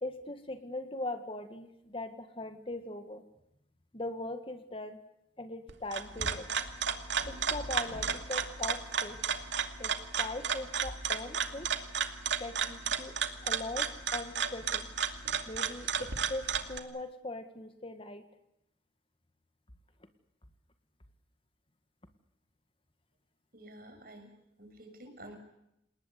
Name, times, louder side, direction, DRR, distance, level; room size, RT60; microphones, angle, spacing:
voice 1, 0.0-3.2 3.9-5.0 5.4-6.5 7.3-9.4 9.8-11.7 12.4-13.2 13.4-14.9 15.5-18.3, left 2 dB, 30° left, 8 dB, 1.8 m, -40 dB
sound 1, 5.7-16.8, right 6 dB, 75° right, 2.3 m, -33 dB
voice 2, 23.5-24.3 24.6-25.4, right 1 dB, 50° right, 5 dB, 6.6 m, -50 dB
28.5 x 19.5 x 8.3 m, 0.82 s
head